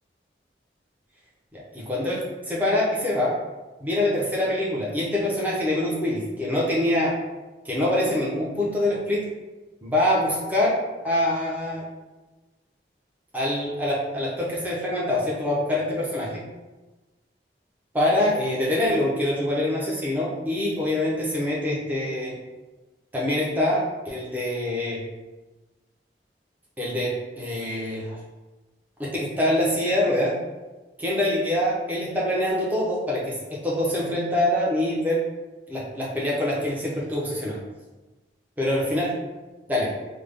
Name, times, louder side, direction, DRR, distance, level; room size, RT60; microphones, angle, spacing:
voice 1, 1.5-3.3 3.8-7.1 7.6-9.2 9.8-10.8 11.0-11.8 13.3-16.4 17.9-22.3 23.1-25.0 26.8-28.2 29.0-30.3 31.0-35.2 35.7-37.6 38.6-39.1 39.7-39.9, left 1 dB, 10° right, -5 dB, 0.6 m, -25 dB
3.4 x 2.0 x 3.5 m, 1.1 s
head